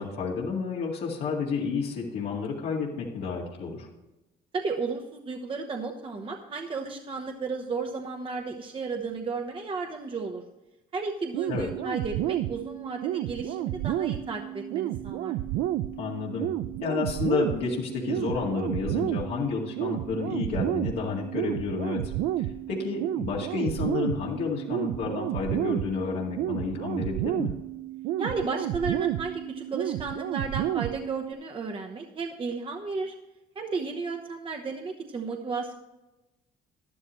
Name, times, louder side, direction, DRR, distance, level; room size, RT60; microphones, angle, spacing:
voice 1, 0.0-3.9 11.5-11.7 15.9-16.5 16.8-27.5, left 5 dB, 75° left, -4 dB, 2.1 m, -30 dB
voice 2, 4.5-10.4 10.9-15.4 28.2-33.1 33.5-35.7, right 4 dB, 30° right, 3 dB, 1.0 m, -33 dB
sound 1, 11.3-31.3, right 13 dB, 80° right, 0.4 m, -31 dB
12.0 x 11.0 x 3.1 m, 1.0 s
cardioid pair, 110°, 17 cm